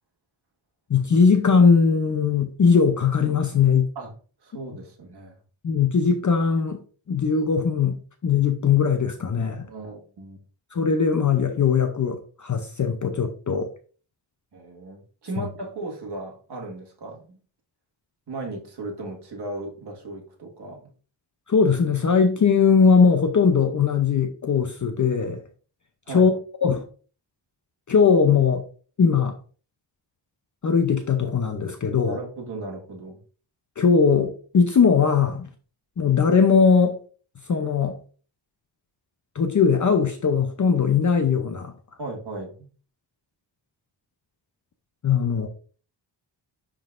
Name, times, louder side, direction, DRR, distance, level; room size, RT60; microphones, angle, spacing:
voice 1, 0.9-3.9 5.6-6.8 7.1-9.7 10.7-13.7 15.4-15.5 21.5-25.4 26.1-26.3 26.6-26.8 27.9-28.6 29.0-29.3 30.6-32.2 33.8-35.5 36.0-37.0 37.5-38.0 39.3-41.7 45.0-45.5, left 5 dB, 40° left, 0.6 m, -20 dB
voice 2, 4.4-5.4 9.6-10.4 14.5-17.4 18.3-20.9 26.1-26.3 32.0-33.2 42.0-42.7, right 2 dB, 60° right, 1.8 m, -36 dB
10.5 x 3.8 x 2.5 m
wide cardioid pair, 175°, 45 cm